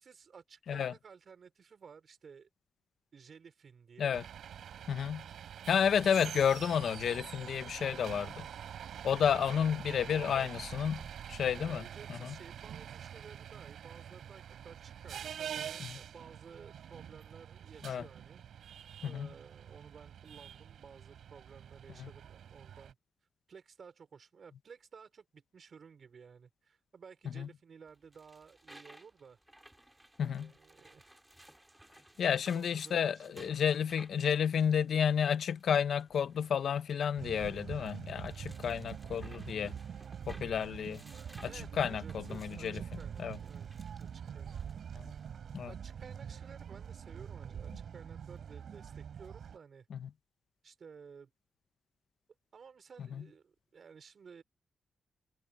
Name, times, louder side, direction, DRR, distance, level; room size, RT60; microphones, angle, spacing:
voice 1, 0.0-2.5 3.1-4.2 9.3-9.8 10.1-10.5 11.5-18.4 19.0-23.0 23.5-29.4 30.2-31.1 32.5-33.9 39.6-39.8 41.4-43.7 44.0-44.6 45.7-49.9 50.6-51.3 52.5-54.4, right 6 dB, 50° right, 4.9 m, -55 dB
sound 1, 4.1-22.9, right 9 dB, 80° right, 6.3 m, -46 dB
voice 2, 4.9-5.2 5.7-8.5 9.0-11.0 11.3-11.8 12.1-12.3 15.8-15.9 17.8-18.0 19.0-19.3 22.0-22.1 27.4-27.5 30.2-30.5 32.2-39.8 40.3-41.0 41.8-42.8 43.2-43.4 44.9-45.0 45.5-45.7 49.9-50.1 53.1-53.2, left 8 dB, 70° left, 0.8 m, -31 dB
sound 2, 27.9-45.3, right 1 dB, 5° right, 4.4 m, -60 dB
sound 3, 37.2-49.6, right 8 dB, 65° right, 4.6 m, -44 dB
wide cardioid pair, 140°, 0 cm